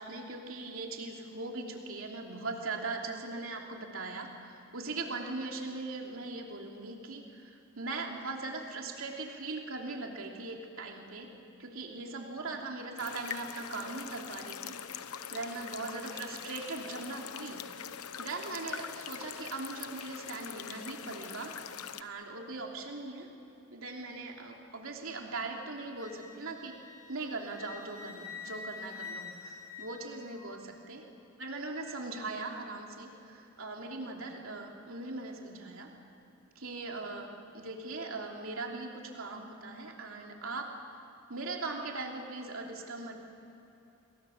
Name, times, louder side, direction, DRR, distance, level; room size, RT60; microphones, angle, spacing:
voice 1, 0.0-11.3 11.6-14.7 15.3-17.6 18.2-21.5 22.0-23.3 23.7-26.7 27.1-31.0 31.4-35.9 36.5-37.3 37.5-40.7 41.3-43.1, right 3 dB, 65° right, 1 dB, 3.0 m, -40 dB
sound 1, 13.0-22.0, left 8 dB, 80° left, 0.9 m, -43 dB
Wind instrument woodwind instrument, 26.0-30.6, left 5 dB, 15° left, 1.8 m, -46 dB
28.5 x 22.5 x 7.2 m, 3.0 s
head